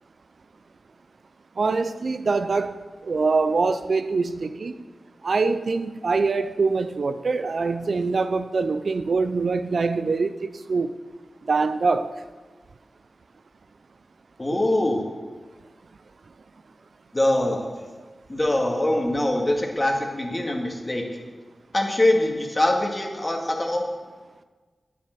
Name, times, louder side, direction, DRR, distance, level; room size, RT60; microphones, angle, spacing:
voice 1, 1.6-4.7 5.2-10.9 11.5-12.1, right 4 dB, 70° right, 0.5 m, -24 dB
voice 2, 14.4-15.1 17.1-17.7 18.3-21.1 21.7-23.9, left 1 dB, 25° left, 2.0 m, -23 dB
9.4 x 7.6 x 6.6 m
cardioid pair, 50°, 0 cm